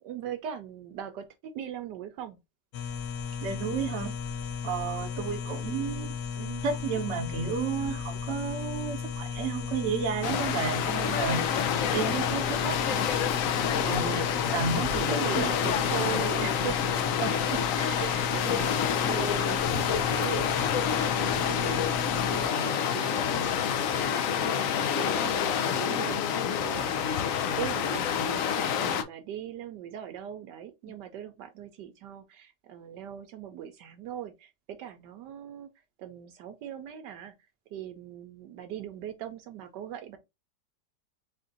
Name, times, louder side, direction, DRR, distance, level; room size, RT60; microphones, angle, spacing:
voice 1, 0.0-2.4 6.4-6.6 15.1-16.8 17.7-35.7 36.0-37.3 37.7-40.2, right 10 dB, 75° right, 1.1 m, -40 dB
sound 1, 2.7-22.5, left 6 dB, 70° left, 1.0 m, -35 dB
voice 2, 3.4-4.2 4.6-6.1 6.6-13.1 13.8-15.5 17.2-17.6 18.0-18.1, right 6 dB, 50° right, 0.9 m, -32 dB
sound 2, 10.2-29.0, left 8 dB, 90° left, 0.7 m, -28 dB
4.3 x 2.5 x 3.7 m
omnidirectional pair, 2.0 m